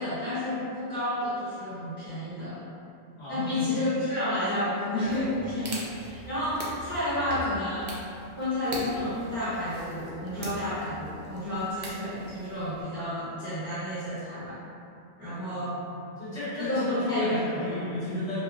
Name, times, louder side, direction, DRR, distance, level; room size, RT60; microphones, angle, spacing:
voice 1, 0.0-2.6 3.3-7.9 8.4-14.6 15.2-15.7 16.6-17.8, left 1 dB, 50° left, -13 dB, 0.9 m, -30 dB
voice 2, 3.2-3.8 15.5-16.9 17.2-18.4, left 1 dB, 75° left, -12 dB, 1.1 m, -35 dB
sound 1, 5.1-12.8, right 1 dB, 60° right, 0.6 m, -42 dB
2.7 x 2.4 x 2.3 m, 2.6 s
omnidirectional pair, 1.2 m